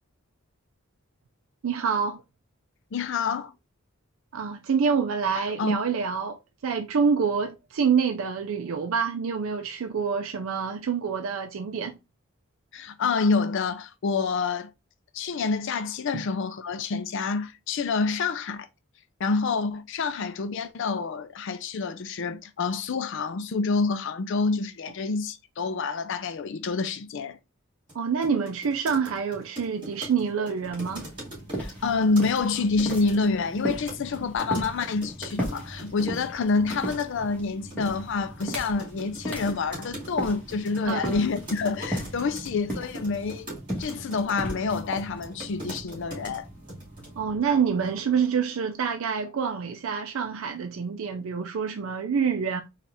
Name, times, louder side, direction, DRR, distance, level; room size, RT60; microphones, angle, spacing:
voice 1, 1.6-2.2 4.3-12.0 27.9-31.1 40.9-41.2 47.2-52.6, right 6 dB, 70° right, 0.4 m, -27 dB
voice 2, 2.9-3.5 5.3-5.8 12.7-14.7 15.1-18.7 19.2-27.4 31.6-43.5 43.8-46.5, left 4 dB, 60° left, 0.4 m, -27 dB
sound 1, 27.9-28.0 28.2-33.2 33.9-36.3 36.7-37.1 37.7-46.4 46.7-47.1, right 1 dB, 20° right, 2.3 m, -41 dB
sound 2, 30.6-48.2, right 1 dB, 5° left, 1.3 m, -37 dB
4.2 x 2.4 x 3.3 m
head